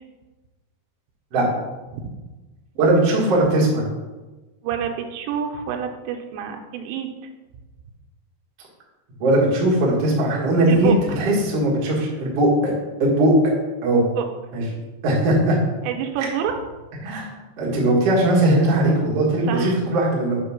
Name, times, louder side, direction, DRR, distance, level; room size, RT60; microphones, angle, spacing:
voice 1, 2.7-3.8 9.2-12.7 13.0-13.3 13.8-14.0 14.5-14.6 15.0-15.6 17.0-17.2 17.6-20.4, right 1 dB, 70° right, -6 dB, 1.4 m, -19 dB
voice 2, 4.6-7.1 10.7-11.2 14.1-14.3 15.8-16.6 19.5-19.8, right 8 dB, 85° right, 4 dB, 3.2 m, -27 dB
7.7 x 3.0 x 5.7 m, 1.2 s
omnidirectional pair, 5.6 m